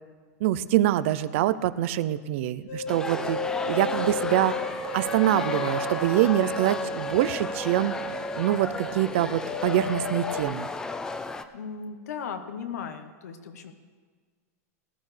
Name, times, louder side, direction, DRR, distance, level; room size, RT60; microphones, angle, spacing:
voice 1, 0.4-4.6 4.9-7.9 8.4-10.7, right 13 dB, 50° right, 15 dB, 0.5 m, -25 dB
sound 1, 2.7-9.0 9.4-10.4, left 1 dB, 70° left, 2.2 m, -33 dB
sound 2, 2.9-11.4, left 3 dB, 10° left, 0.4 m, -34 dB
sound 3, 3.8-9.3, left 7 dB, 35° left, 1.2 m, -44 dB
voice 2, 11.5-13.7, left 6 dB, 90° left, 7 dB, 1.0 m, -37 dB
18.5 x 11.0 x 3.3 m, 1.5 s
supercardioid pair, 160°, 9 cm